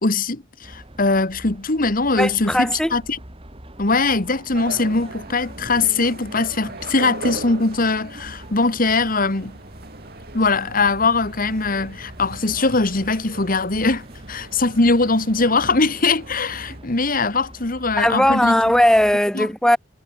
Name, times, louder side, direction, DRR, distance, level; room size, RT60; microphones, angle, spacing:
voice 1, 0.0-3.2 3.8-9.5 10.3-18.6 19.3-19.5, left 3 dB, 45° left, 1.7 m, -21 dB
sound 1, 0.6-19.2, right 1 dB, 30° right, 4.0 m, -44 dB
voice 2, 2.2-2.9 18.0-19.8, left 1 dB, 5° left, 0.7 m, -18 dB
sound 2, 4.5-16.8, right 2 dB, 55° right, 7.5 m, -38 dB
head